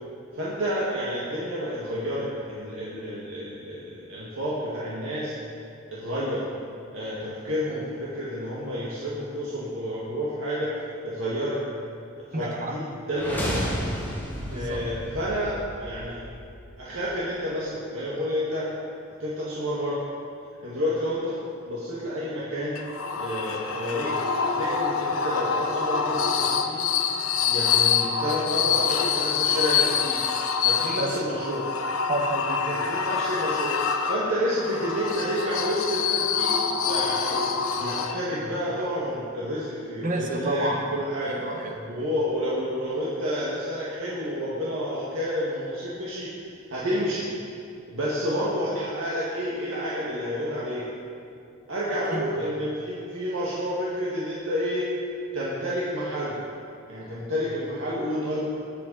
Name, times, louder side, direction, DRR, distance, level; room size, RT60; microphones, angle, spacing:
voice 1, 0.3-5.3 5.9-6.5 6.9-10.7 11.0-11.6 12.3-13.6 14.5-16.2 16.8-18.7 19.2-20.0 20.6-21.4 21.6-22.8 23.1-24.1 24.4-26.9 27.4-30.2 30.6-31.7 32.9-33.7 34.1-37.4 37.8-41.3 41.9-46.3 46.7-47.3 47.9-50.8 51.7-54.8 55.3-56.4 56.9-58.4, equal, 70° right, -8 dB, 2.1 m, -29 dB
voice 2, 12.3-12.7 14.5-14.8 30.8-31.3 32.1-32.9 40.0-40.8 41.3-41.8 52.1-52.3, right 1 dB, 40° right, 1 dB, 1.5 m, -30 dB
sound 1, 13.1-17.1, equal, 10° left, 2.0 m, -33 dB
sound 2, 22.7-38.5, left 6 dB, 80° left, 0.9 m, -26 dB
20.5 x 8.4 x 4.3 m, 2.5 s
head